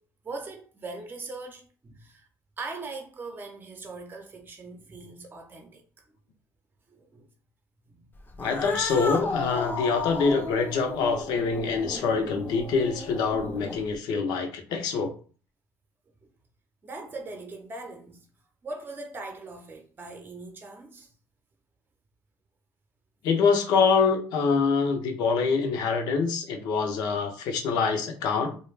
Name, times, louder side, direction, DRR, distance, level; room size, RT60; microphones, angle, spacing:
voice 1, 0.2-2.3 2.6-5.8 6.9-7.3 7.9-8.0 8.6-8.8 16.8-18.2 18.6-21.1, right 3 dB, 30° right, 0.6 m, -40 dB
Cat, 8.3-14.0, left 3 dB, 25° left, 0.5 m, -34 dB
voice 2, 8.4-15.1 23.2-28.6, left 5 dB, 75° left, 0.6 m, -25 dB
2.3 x 2.1 x 3.2 m
supercardioid pair, 80°, 7 cm